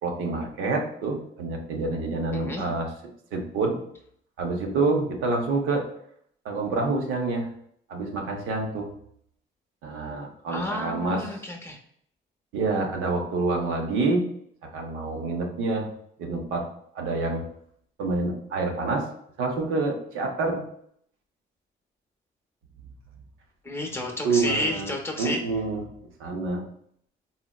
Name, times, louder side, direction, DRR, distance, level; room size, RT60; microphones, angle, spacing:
voice 1, 0.0-2.9 3.3-3.8 4.4-5.9 6.4-7.5 7.9-8.9 9.8-11.3 12.5-14.3 14.6-15.9 16.2-16.7 16.9-17.5 18.0-19.1 19.4-20.6 24.2-25.8 26.2-26.6, right 3 dB, 90° right, 1 dB, 0.6 m, -27 dB
voice 2, 2.3-2.7 10.5-11.8 23.6-25.4, left 1 dB, 10° left, 1 dB, 0.6 m, -31 dB
3.8 x 2.0 x 2.2 m, 0.67 s
cardioid pair, 90°, 20 cm